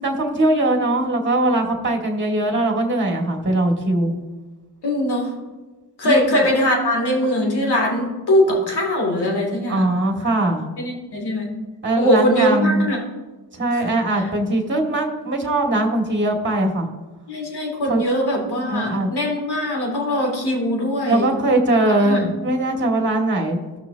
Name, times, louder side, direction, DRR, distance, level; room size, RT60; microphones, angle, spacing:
voice 1, 0.0-4.1 6.0-6.4 9.7-10.7 11.8-12.9 13.5-16.9 17.9-18.0 18.7-19.1 21.1-23.6, right 1 dB, 25° right, 2 dB, 2.1 m, -20 dB
voice 2, 4.8-5.3 6.0-10.0 10.8-11.5 12.0-13.0 13.7-13.9 17.3-21.3 22.0-22.3, left 1 dB, 50° left, 0 dB, 2.9 m, -21 dB
16.0 x 6.0 x 2.9 m, 1.2 s
supercardioid pair, 60°, 48 cm